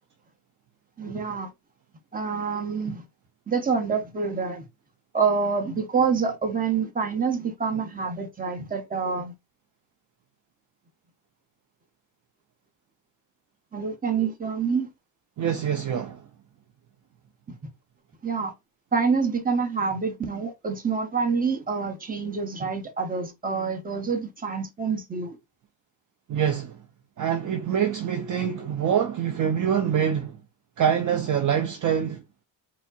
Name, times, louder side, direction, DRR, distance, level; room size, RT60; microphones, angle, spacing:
voice 1, 1.0-1.5 2.1-3.0 3.5-4.6 5.1-9.3 13.7-14.9 17.5-17.6 18.2-18.5 18.9-25.4, right 5 dB, 20° right, 0.9 m, -27 dB
voice 2, 15.4-16.2 26.3-26.8 27.2-30.4 30.8-32.2, right 8 dB, 40° right, 0.6 m, -25 dB
4.3 x 2.1 x 2.5 m
cardioid pair, 90°, 46 cm